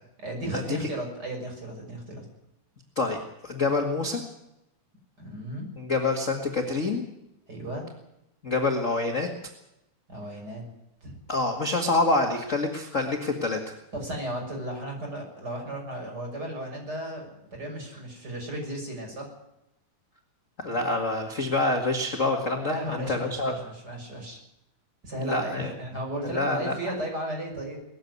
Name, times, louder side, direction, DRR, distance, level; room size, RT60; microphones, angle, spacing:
voice 1, 0.2-2.2 5.2-5.7 7.5-7.9 10.1-10.6 11.0-11.2 13.9-19.3 22.7-24.4 25.0-27.8, right 1 dB, 30° right, 2 dB, 6.9 m, -35 dB
voice 2, 3.0-4.2 5.8-7.1 8.4-9.3 11.3-13.8 20.6-23.6 25.2-25.7 26.3-26.8, left 2 dB, 30° left, 3 dB, 1.9 m, -26 dB
20.0 x 15.0 x 9.6 m, 0.88 s
omnidirectional pair, 3.6 m